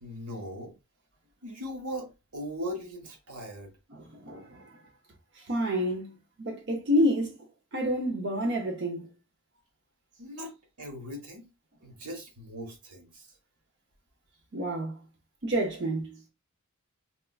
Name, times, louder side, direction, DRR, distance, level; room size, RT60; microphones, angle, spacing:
voice 1, 0.0-0.7 1.4-3.7 10.2-11.5 11.8-13.3, equal, 85° right, 1.1 m, -39 dB
voice 2, 3.9-4.8 5.5-6.1 6.4-7.4 7.7-9.1 14.5-14.9 15.4-16.2, equal, 55° right, 0.7 m, -28 dB
4.2 x 2.4 x 2.3 m
head